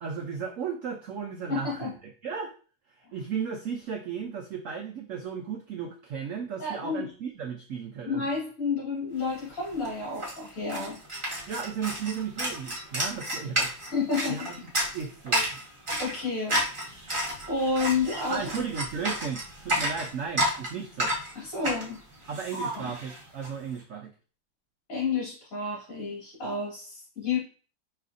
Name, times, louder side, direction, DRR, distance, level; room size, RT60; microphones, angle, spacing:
voice 1, 0.0-2.5 3.1-8.3 11.5-13.7 14.3-14.7 14.9-15.5 18.3-21.1 22.3-24.1, right 6 dB, 80° right, 2 dB, 0.7 m, -35 dB
voice 2, 1.5-1.9 6.6-7.1 8.0-11.0 13.9-14.5 16.0-16.6 17.5-18.5 21.3-22.0 22.5-22.9 24.9-27.4, left 4 dB, 45° left, -4 dB, 2.5 m, -30 dB
sound 1, 9.3-9.4 9.6-23.5, equal, 20° right, 0.8 m, -31 dB
4.9 x 3.3 x 2.5 m, 0.38 s
omnidirectional pair, 2.0 m